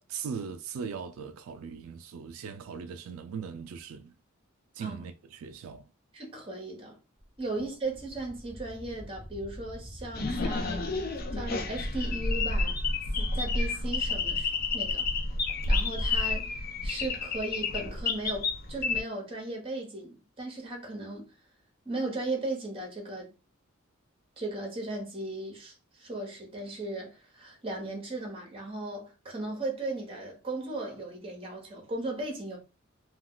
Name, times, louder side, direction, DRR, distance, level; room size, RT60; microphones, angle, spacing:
voice 1, 0.1-4.2 4.7-5.9 7.6-7.7, right 6 dB, 80° right, 0.3 m, -39 dB
voice 2, 6.1-7.0 7.4-10.8 11.3-12.8 13.2-15.0 15.7-21.3 21.8-23.3 24.4-32.6, right 2 dB, 25° right, 0.9 m, -37 dB
Wind, 7.2-13.6, equal, 30° left, 1.1 m, -46 dB
sound 1, 10.1-19.0, left 3 dB, 45° left, 0.4 m, -30 dB
2.3 x 2.3 x 3.6 m
head